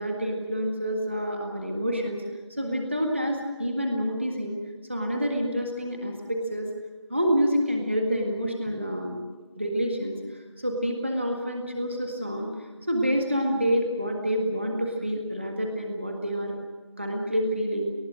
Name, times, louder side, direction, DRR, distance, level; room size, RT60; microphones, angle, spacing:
voice 1, 0.0-2.2 2.6-4.5 4.9-6.7 7.1-9.2 9.6-10.1 10.6-12.5 12.9-16.5 17.0-17.9, equal, 25° right, 1 dB, 1.8 m, -27 dB
27.5 x 19.5 x 6.3 m, 1.3 s
figure-of-eight pair, 180°, 15 cm